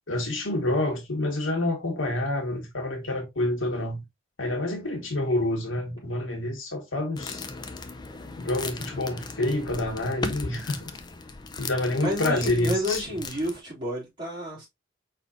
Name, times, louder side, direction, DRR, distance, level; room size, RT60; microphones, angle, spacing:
voice 1, 0.1-4.0 4.4-7.4 8.4-10.9 11.6-13.2, left 1 dB, 85° left, 1.7 m, -28 dB
sound 1, 7.2-13.6, left 4 dB, 20° left, 0.5 m, -37 dB
voice 2, 12.0-14.7, equal, 25° right, 3.2 m, -30 dB
4.7 x 4.2 x 2.5 m
head